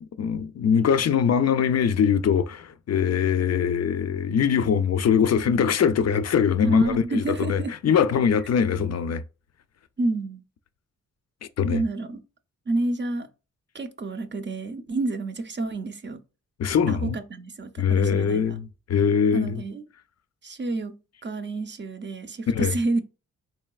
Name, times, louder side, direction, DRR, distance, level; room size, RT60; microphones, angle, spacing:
voice 1, 0.0-9.2 11.6-11.8 16.6-17.2 17.8-19.6 22.5-22.7, left 7 dB, 55° left, 0.4 m, -22 dB
voice 2, 6.6-7.7 10.0-10.4 11.7-12.2 12.7-13.3 13.7-16.2 16.9-18.6 19.3-19.8 20.4-23.0, right 2 dB, 35° right, 0.6 m, -29 dB
3.8 x 3.2 x 2.3 m
cardioid pair, 60°, 31 cm